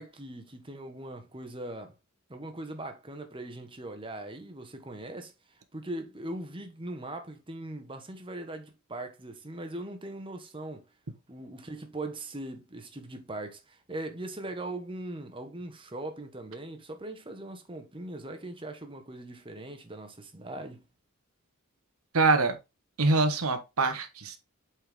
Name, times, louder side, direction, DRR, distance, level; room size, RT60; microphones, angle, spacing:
voice 1, 0.0-1.9 2.3-5.3 5.7-10.9 11.3-20.8, right 1 dB, 25° right, 1.2 m, -40 dB
voice 2, 22.1-22.6 23.0-24.4, right 3 dB, 85° right, 1.2 m, -24 dB
8.0 x 4.4 x 3.5 m
head